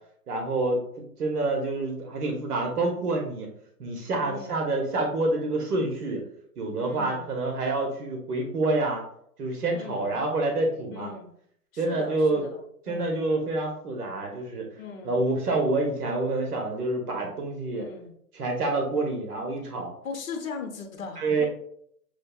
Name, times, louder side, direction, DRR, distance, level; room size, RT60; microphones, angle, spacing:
voice 1, 0.3-3.5 3.8-6.2 6.6-9.0 9.4-11.1 11.8-12.4 12.9-14.7 15.0-17.9 18.3-19.9 21.2-21.5, right 2 dB, 75° right, 2 dB, 1.0 m, -27 dB
voice 2, 4.2-4.6 6.8-7.2 9.7-10.1 10.9-11.3 11.7-13.2 14.8-15.2 17.7-18.1 20.0-21.5, left 5 dB, 60° left, 4 dB, 0.9 m, -39 dB
6.3 x 2.4 x 2.2 m, 0.68 s
hypercardioid pair, 170°, 46 cm